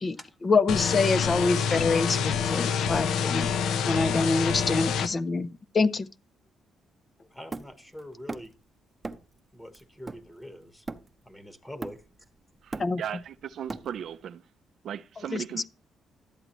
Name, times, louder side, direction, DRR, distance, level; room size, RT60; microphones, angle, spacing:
voice 1, 0.4-3.5 3.8-5.5 5.7-6.1 12.8-13.0 15.3-15.4, left 3 dB, 35° left, 0.5 m, -25 dB
sound 1, 0.7-5.1, left 7 dB, 80° left, 0.6 m, -27 dB
voice 2, 7.3-8.5 9.5-10.9 11.2-12.0, left 1 dB, 10° left, 1.1 m, -44 dB
Hammer, 7.5-8.6 9.0-9.4 9.7-11.3 11.8-12.3 12.5-14.2, right 3 dB, 25° right, 0.7 m, -40 dB
voice 3, 12.6-14.4 14.8-15.7, right 9 dB, 65° right, 0.4 m, -37 dB
12.0 x 7.9 x 3.0 m
cardioid pair, 90°, 0 cm